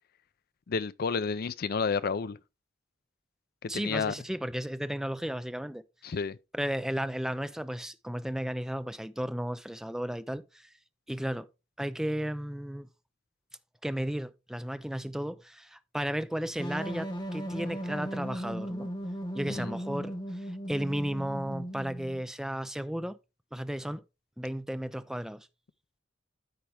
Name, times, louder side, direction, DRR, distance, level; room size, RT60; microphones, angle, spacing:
voice 1, 0.7-2.4 3.6-4.1 6.0-6.4 19.5-19.7, left 5 dB, 50° left, 0.5 m, -31 dB
voice 2, 3.7-5.8 6.5-10.7 11.1-11.5 11.8-12.9 13.8-18.9 19.3-20.2 20.7-23.2 23.5-24.0 24.4-25.5, equal, 5° right, 0.4 m, -34 dB
sound 1, 16.6-22.2, equal, 25° left, 1.5 m, -37 dB
13.0 x 4.5 x 3.4 m
head